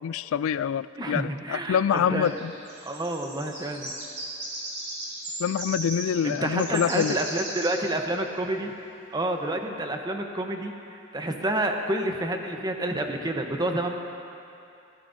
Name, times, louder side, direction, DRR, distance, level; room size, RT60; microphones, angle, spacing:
voice 1, 0.0-2.5 5.4-7.2, left 8 dB, 75° left, 16 dB, 0.3 m, -26 dB
voice 2, 1.0-2.3 2.8-3.9 6.2-8.7 9.1-13.9, right 1 dB, 20° right, 3 dB, 0.9 m, -29 dB
sound 1, 2.2-8.2, right 1 dB, 40° right, 3.5 m, -37 dB
20.0 x 16.0 x 2.7 m, 2.7 s
head